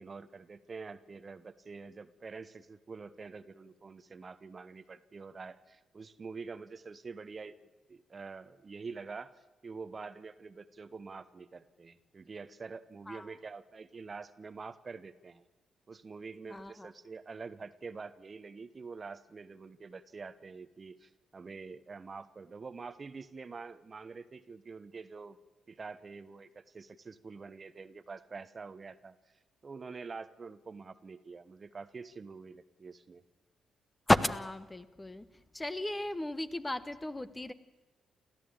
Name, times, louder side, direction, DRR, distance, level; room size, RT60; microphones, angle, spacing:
voice 1, 0.0-9.3 9.6-15.5 15.9-25.4 25.7-29.2 29.6-33.2, right 4 dB, 40° right, 13 dB, 1.1 m, -46 dB
voice 2, 16.5-16.9 34.1-35.3 35.5-37.5, left 1 dB, 20° left, 12 dB, 1.4 m, -32 dB
29.0 x 13.5 x 8.8 m, 1.1 s
hypercardioid pair, 40°, 0 cm